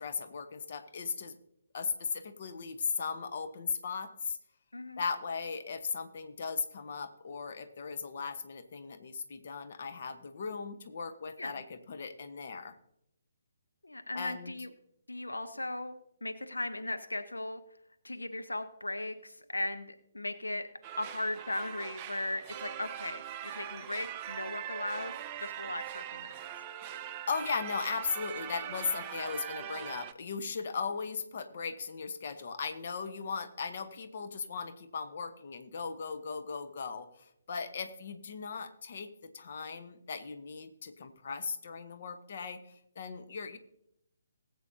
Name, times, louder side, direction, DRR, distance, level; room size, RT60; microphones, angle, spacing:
voice 1, 0.0-1.4 1.7-4.4 5.0-12.8 14.1-14.5 27.3-43.6, left 5 dB, 50° left, 9 dB, 1.0 m, -37 dB
voice 2, 13.8-14.7 15.1-15.9 16.2-17.6 18.0-20.7 21.0-26.3, left 2 dB, 80° left, 8 dB, 0.8 m, -37 dB
sound 1, 20.8-30.1, right 10 dB, 25° right, 0.5 m, -42 dB
19.5 x 8.1 x 2.8 m, 0.76 s
figure-of-eight pair, 140°, 0 cm